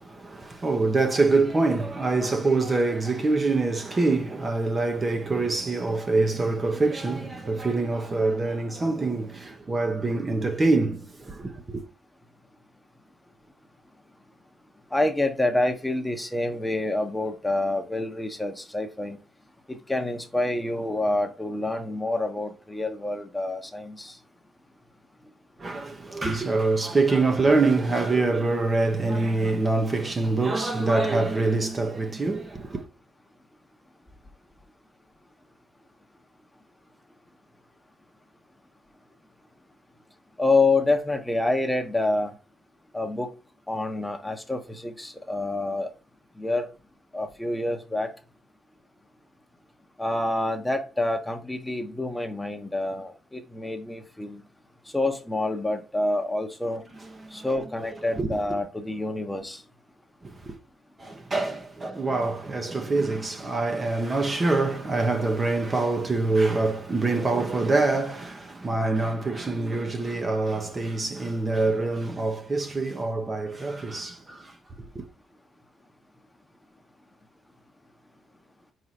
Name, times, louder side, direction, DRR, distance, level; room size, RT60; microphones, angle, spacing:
voice 1, 0.0-11.8 25.6-32.8 57.0-57.5 58.2-58.3 60.2-60.6 61.0-74.5 74.9-75.0, right 3 dB, 30° right, 1.2 m, -25 dB
voice 2, 14.9-19.2 19.7-24.2 40.4-42.3 42.9-43.3 43.7-45.9 46.4-46.7 47.1-48.1 50.0-54.4 54.9-56.8 57.3-59.6, left 2 dB, 10° left, 1.1 m, -27 dB
4.7 x 4.7 x 4.3 m
cardioid pair, 90°, 0 cm